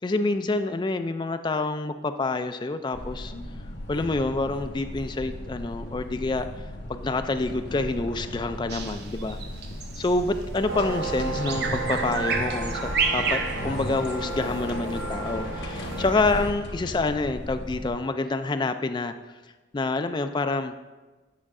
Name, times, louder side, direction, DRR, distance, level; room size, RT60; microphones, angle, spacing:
voice 1, 0.0-3.3 3.9-6.5 6.9-9.4 10.0-19.1 19.7-20.7, left 3 dB, 25° left, 9 dB, 0.3 m, -27 dB
sound 1, 2.9-17.9, left 1 dB, 60° left, 0.9 m, -37 dB
Bird vocalization bird call bird song, 8.7-14.2, right 5 dB, 55° right, 0.6 m, -30 dB
sound 2, 10.7-16.5, right 2 dB, 75° right, 1.4 m, -33 dB
8.7 x 5.0 x 3.6 m, 1.2 s
head